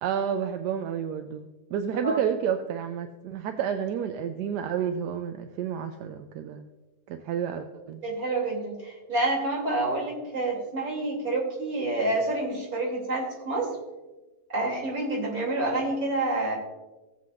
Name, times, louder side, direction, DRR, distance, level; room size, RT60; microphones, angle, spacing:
voice 1, 0.0-6.7 7.1-8.0, right 8 dB, 85° right, 7 dB, 1.2 m, -30 dB
voice 2, 8.0-13.7 14.5-16.6, right 2 dB, 60° right, -3 dB, 3.5 m, -28 dB
18.0 x 7.6 x 2.5 m, 1.1 s
omnidirectional pair, 1.8 m